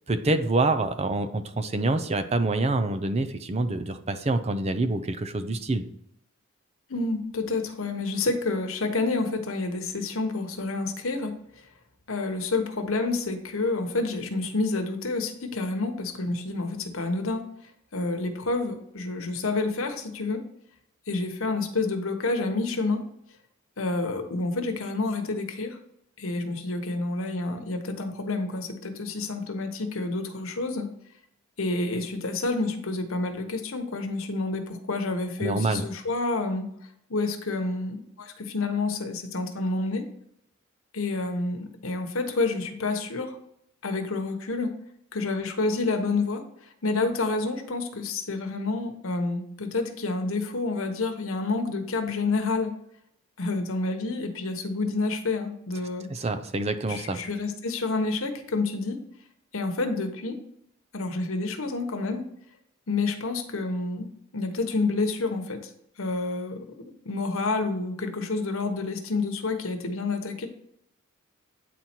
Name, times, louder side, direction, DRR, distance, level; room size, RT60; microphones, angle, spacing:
voice 1, 0.1-5.9 35.4-35.9 56.1-57.2, right 2 dB, 30° right, 10 dB, 0.5 m, -26 dB
voice 2, 6.9-11.7 12.1-17.4 17.9-20.4 21.1-23.0 23.8-25.8 26.2-30.9 31.6-36.7 37.1-40.0 40.9-43.4 43.8-44.7 45.1-52.7 53.4-56.1 56.9-59.0 59.5-60.4 60.9-62.3 62.9-64.1 64.3-65.7 66.0-66.7 67.0-70.5, left 3 dB, 70° left, 6 dB, 1.1 m, -29 dB
9.1 x 4.3 x 4.4 m, 0.74 s
head